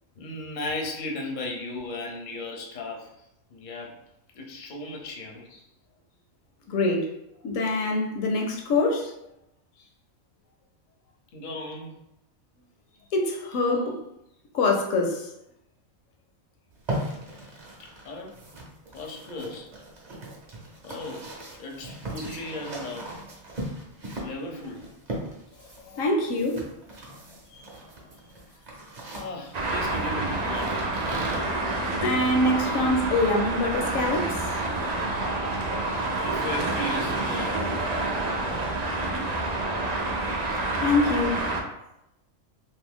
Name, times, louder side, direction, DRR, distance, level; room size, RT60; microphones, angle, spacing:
voice 1, 0.2-3.1 3.5-4.0 4.3-5.5 11.3-12.0 17.8-18.3 18.9-19.7 20.8-21.3 21.6-23.1 24.2-24.9 29.1-30.8 36.2-37.7, left 2 dB, 50° left, 0 dB, 0.6 m, -36 dB
voice 2, 6.7-7.1 7.4-9.1 13.1-14.0 14.5-15.3 25.8-26.6 27.6-27.7 32.0-34.4 40.8-41.4, left 2 dB, 80° left, 2 dB, 1.0 m, -24 dB
sound 1, 16.7-31.4, right 1 dB, 40° right, 0.7 m, -38 dB
Traffic noise roadway noise, 29.5-41.6, right 2 dB, 85° right, 0.3 m, -28 dB
2.6 x 2.6 x 3.5 m, 0.83 s
omnidirectional pair, 1.4 m